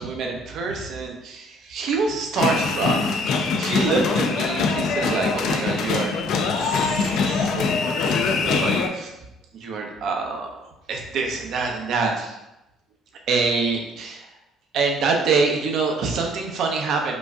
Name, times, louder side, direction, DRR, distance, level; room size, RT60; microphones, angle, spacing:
voice 1, 0.0-3.0 3.4-6.1 6.5-9.1 9.5-10.5 10.9-12.4 13.3-14.3 14.7-17.2, right 4 dB, 60° right, 2 dB, 0.6 m, -26 dB
sound 1, 2.4-8.9, left 5 dB, 60° left, 0.4 m, -23 dB
5.0 x 2.3 x 2.5 m, 0.92 s
cardioid pair, 130°, 0 cm